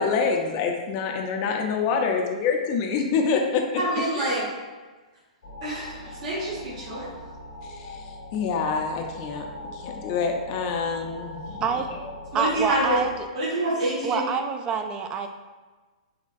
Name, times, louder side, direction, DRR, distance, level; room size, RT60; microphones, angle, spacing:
voice 1, 0.0-3.7 4.1-4.3 7.6-9.5 9.7-11.6, left 5 dB, 40° left, 2 dB, 0.4 m, -26 dB
voice 2, 3.8-4.4 5.6-7.1 12.3-13.0 13.3-14.3, right 1 dB, 50° right, -8 dB, 1.2 m, -27 dB
sound 1, 5.4-13.2, left 1 dB, 70° left, 0.8 m, -40 dB
voice 3, 12.3-13.1 14.0-15.3, right 6 dB, 25° right, 6 dB, 0.3 m, -26 dB
3.9 x 3.0 x 2.5 m, 1.3 s
hypercardioid pair, 120°, 4 cm